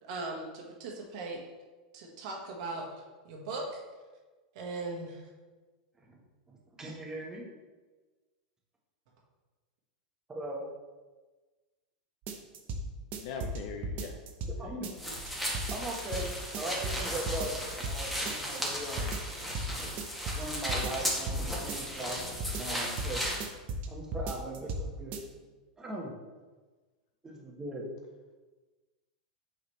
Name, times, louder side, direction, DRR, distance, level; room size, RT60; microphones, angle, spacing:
voice 1, 0.0-1.4 1.9-2.9 3.3-3.6 4.6-5.2, right 3 dB, 60° right, 0 dB, 1.7 m, -38 dB
voice 2, 6.5-7.4 10.3-10.6 14.6-14.9 15.7-19.2 20.3-23.2 23.9-25.2 25.8-26.2 27.2-27.9, right 1 dB, 15° right, -2 dB, 1.4 m, -39 dB
sound 1, 12.3-12.8 13.1-14.5 14.8-15.3 15.5-16.3 16.5-17.0 17.3-18.0 18.3-18.7 19.0-19.7 20.0-21.4 21.7-22.2 22.4-23.1 23.4-23.9 24.1-24.8 25.1-25.2, right 2 dB, 40° right, 0.9 m, -35 dB
voice 3, 13.2-14.3 14.6-15.0, left 5 dB, 55° left, 3 dB, 0.6 m, -42 dB
sound 2, 15.0-23.4, equal, ahead, 1.5 m, -36 dB
8.3 x 3.9 x 3.3 m, 1.3 s
supercardioid pair, 130°, 4 cm